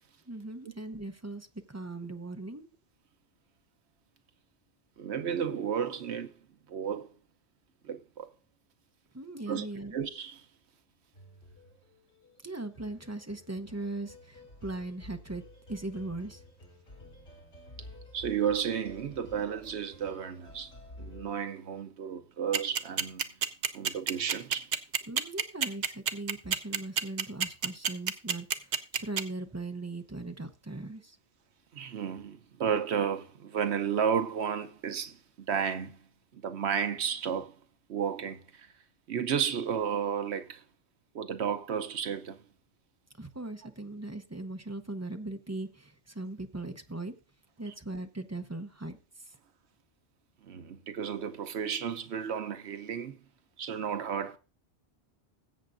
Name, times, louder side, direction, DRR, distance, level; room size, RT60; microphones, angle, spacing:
voice 1, 0.3-2.7 9.1-10.0 12.4-15.4 15.7-16.4 25.1-31.2 43.2-47.1 47.6-49.3, right 2 dB, 15° right, 0.7 m, -39 dB
voice 2, 5.0-6.3 6.7-7.1 7.8-8.3 9.5-9.7 9.9-10.4 18.1-20.7 21.0-23.3 23.7-24.7 31.7-35.2 35.5-36.0 36.3-37.6 37.9-38.7 39.1-40.6 41.1-42.4 50.4-53.2 53.6-54.4, right 7 dB, 75° right, 1.1 m, -32 dB
sound 1, 11.1-21.3, left 1 dB, 80° left, 2.7 m, -51 dB
sound 2, 22.5-29.2, right 7 dB, 50° right, 0.6 m, -27 dB
20.0 x 8.1 x 2.6 m
omnidirectional pair, 1.1 m